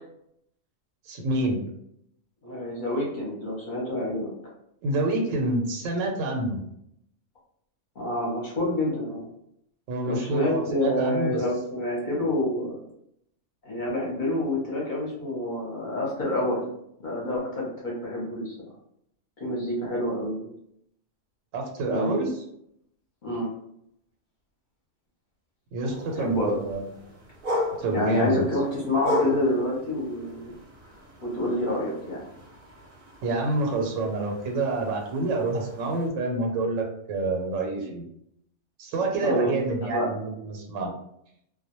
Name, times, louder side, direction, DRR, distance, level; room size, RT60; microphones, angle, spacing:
voice 1, 1.1-1.6 4.8-6.6 9.9-11.4 21.5-22.3 25.7-26.9 27.8-28.5 33.2-38.0 38.8-40.9, right 2 dB, 85° right, 1 dB, 1.0 m, -27 dB
voice 2, 2.4-4.3 8.0-9.3 10.0-12.8 13.6-16.7 17.0-18.5 19.4-20.5 21.8-22.2 23.2-23.5 26.1-26.6 27.9-30.5 31.2-32.2 39.2-39.5 39.9-40.1, left 1 dB, 45° left, -4 dB, 0.7 m, -27 dB
sound 1, 25.9-36.1, left 1 dB, 50° right, 0.7 m, -36 dB
2.2 x 2.1 x 2.8 m, 0.74 s
omnidirectional pair, 1.3 m